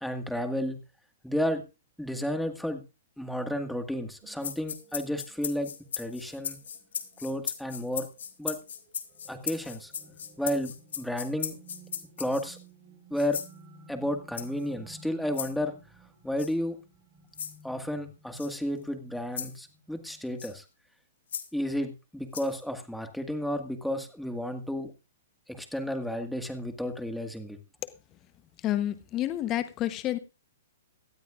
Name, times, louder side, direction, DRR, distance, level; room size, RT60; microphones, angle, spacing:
voice 1, 0.0-0.8 1.2-1.6 2.0-2.8 3.2-5.7 6.0-6.6 7.2-8.1 8.4-8.6 9.3-9.9 10.4-10.7 11.0-11.6 12.2-12.6 13.1-13.4 13.9-15.7 16.2-16.7 17.6-20.6 21.5-24.9 25.5-27.6, equal, ahead, 6 dB, 1.7 m, -32 dB
sound 1, 4.2-20.4, right 2 dB, 30° right, 3.4 m, -56 dB
sound 2, 4.4-12.6 13.2-13.5 14.3-14.7 15.3-15.5 16.4-16.5 17.3-17.6 18.4-18.5 19.4-19.6 20.4-20.6 21.3-21.5 22.3-22.6, left 8 dB, 75° left, 1.9 m, -37 dB
voice 2, 28.6-30.2, left 13 dB, 25° left, 11 dB, 0.9 m, -29 dB
18.0 x 12.5 x 2.5 m, 0.29 s
hypercardioid pair, 140°, 0 cm